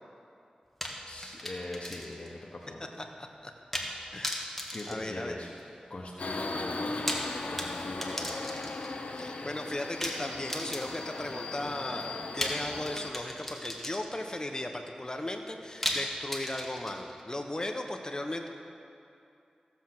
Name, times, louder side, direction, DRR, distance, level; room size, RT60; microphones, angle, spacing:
sound 1, 0.8-2.3 2.6-2.7 3.7-4.0 4.2-5.8 6.8-9.0 10.0-11.2 12.4-14.3 15.8-17.2, equal, 5° left, 1.6 m, -36 dB
voice 1, 1.0-3.0 4.7-5.5 5.9-7.1 7.5-8.5, left 2 dB, 50° left, -4 dB, 1.2 m, -41 dB
voice 2, 4.1-4.5 4.9-5.3 9.1-18.5, left 1 dB, 30° left, 4 dB, 1.1 m, -36 dB
Subway metro underground, 6.2-13.1, left 3 dB, 70° left, 0.8 m, -38 dB
15.5 x 7.2 x 6.2 m, 2.6 s
wide cardioid pair, 70°, 3 cm